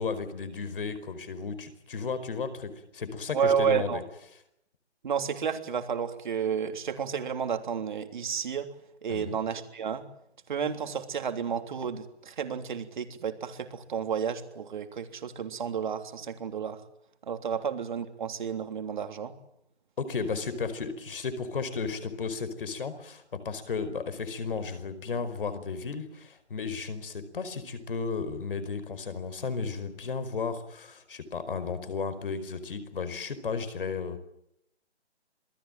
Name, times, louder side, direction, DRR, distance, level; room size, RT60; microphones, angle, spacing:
voice 1, 0.0-4.0 9.1-9.4 20.0-34.2, left 5 dB, 50° left, 12 dB, 5.0 m, -34 dB
voice 2, 3.3-4.0 5.0-8.7 9.0-10.0 10.5-16.8 17.3-19.3, right 7 dB, 45° right, 7 dB, 3.3 m, -31 dB
27.5 x 20.0 x 9.0 m, 0.77 s
hypercardioid pair, 165°, 34 cm